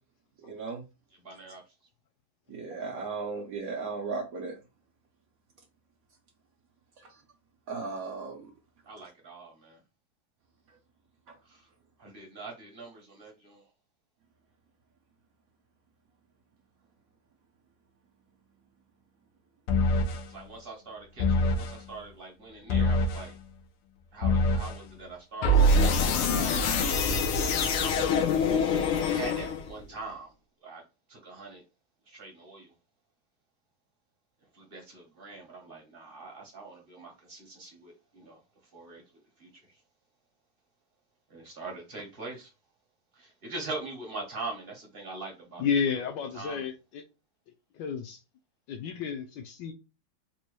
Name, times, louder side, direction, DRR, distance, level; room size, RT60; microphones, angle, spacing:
voice 1, 0.4-0.8 2.5-4.6 7.0-7.1 7.7-8.5 11.3-11.4, right 4 dB, 85° right, 0.7 m, -36 dB
voice 2, 1.2-1.6 8.8-9.8 11.4-11.7 12.0-13.6 20.3-23.3 24.1-28.0 29.0-30.3 30.6-30.8 31.1-31.6 32.1-32.7 34.5-38.4 38.7-39.0 39.4-39.5 41.3-42.5 43.1-45.6 46.3-46.7, right 3 dB, 45° right, 0.7 m, -43 dB
sound 1, 19.7-20.2 21.2-21.7 22.7-23.3 24.2-24.8 25.4-29.8, left 2 dB, 90° left, 1.5 m, -24 dB
voice 3, 45.6-47.0 47.7-48.2 48.7-49.7, left 6 dB, 75° left, 1.1 m, -31 dB
4.2 x 2.2 x 3.0 m
omnidirectional pair, 2.3 m